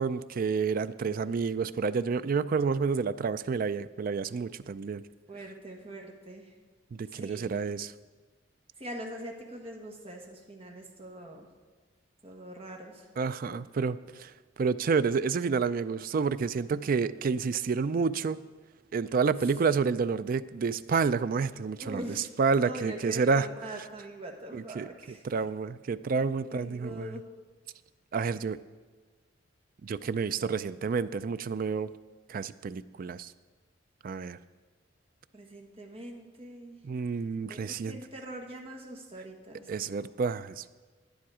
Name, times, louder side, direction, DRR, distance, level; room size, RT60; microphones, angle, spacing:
voice 1, 0.0-5.0 6.9-7.9 13.2-14.3 14.6-18.4 18.9-22.0 22.4-23.5 23.8-23.9 24.5-27.2 28.1-28.6 29.8-31.9 32.3-33.3 34.0-34.4 36.8-38.0 39.7-40.7, right 5 dB, 50° right, 14 dB, 0.4 m, -29 dB
voice 2, 5.3-6.4 7.1-7.6 8.8-11.5 12.2-13.0 21.8-25.2 26.5-27.2 35.3-36.8 37.5-40.1, right 1 dB, 30° right, 1 dB, 1.6 m, -43 dB
10.5 x 10.5 x 4.9 m, 1.4 s
head